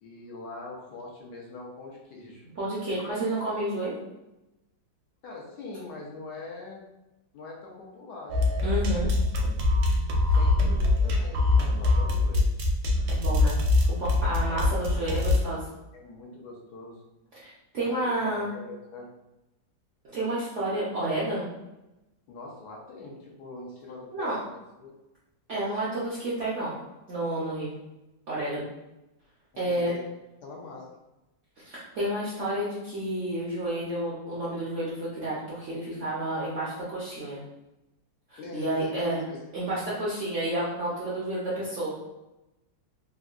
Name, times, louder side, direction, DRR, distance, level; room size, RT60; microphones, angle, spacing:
voice 1, 0.0-2.5 3.0-3.1 5.2-6.8 7.3-8.5 10.3-12.5 14.2-15.4 15.9-17.0 17.8-19.1 22.3-24.9 29.6-30.0 30.4-30.9 38.4-39.5, left 3 dB, 70° left, -2 dB, 1.1 m, -43 dB
voice 2, 2.6-3.9 8.6-9.1 13.1-13.6 14.0-15.6 17.4-18.5 20.0-21.5 24.1-24.4 25.5-26.8 27.1-27.7 28.3-28.7 29.6-29.9 31.6-37.4 38.3-39.2 39.5-41.9, right 1 dB, 65° right, -8 dB, 0.7 m, -30 dB
sound 1, 8.3-15.4, left 2 dB, 85° right, 1.3 m, -23 dB
3.6 x 2.1 x 2.4 m, 0.97 s
omnidirectional pair, 2.0 m